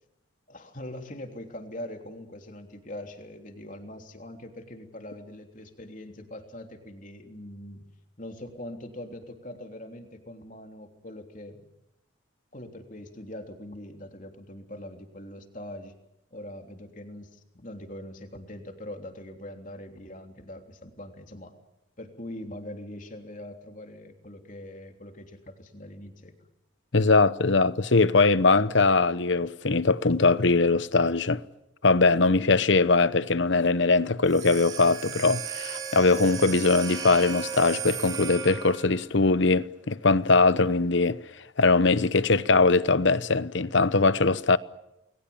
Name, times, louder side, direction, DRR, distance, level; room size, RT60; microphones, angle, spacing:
voice 1, 0.5-7.9 8.2-11.7 12.5-16.0 16.3-21.5 22.0-26.3, left 1 dB, 40° left, 3.3 m, -42 dB
voice 2, 26.9-31.4 31.8-41.2 41.6-44.6, left 3 dB, 65° left, 1.0 m, -21 dB
sound 1, 34.2-39.0, right 7 dB, 20° right, 7.6 m, -35 dB
29.5 x 21.5 x 7.2 m
head